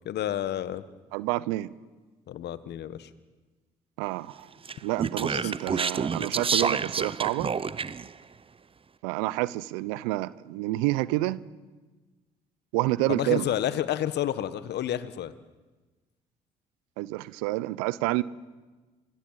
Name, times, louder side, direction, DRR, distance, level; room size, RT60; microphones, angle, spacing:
voice 1, 0.0-0.8 2.3-3.1 5.3-5.5 13.1-15.3, left 11 dB, 60° left, 14 dB, 1.5 m, -30 dB
voice 2, 1.1-1.7 4.0-4.4 4.8-7.5 9.0-11.4 12.7-13.5 17.0-18.2, right 18 dB, 80° right, 20 dB, 0.8 m, -28 dB
Speech, 4.6-8.1, right 5 dB, 30° right, 0.8 m, -29 dB
27.0 x 20.0 x 7.6 m, 1.3 s
hypercardioid pair, 50°, 19 cm